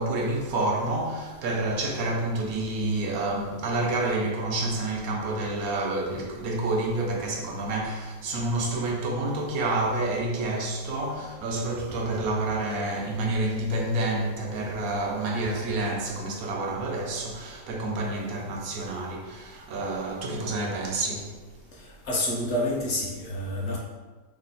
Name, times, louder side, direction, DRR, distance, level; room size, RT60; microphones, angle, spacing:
voice 1, 0.0-21.4, right 2 dB, 80° right, 1.1 m, -28 dB
voice 2, 21.7-23.8, left 1 dB, 60° left, 0.9 m, -29 dB
3.2 x 2.1 x 3.9 m
omnidirectional pair, 1.5 m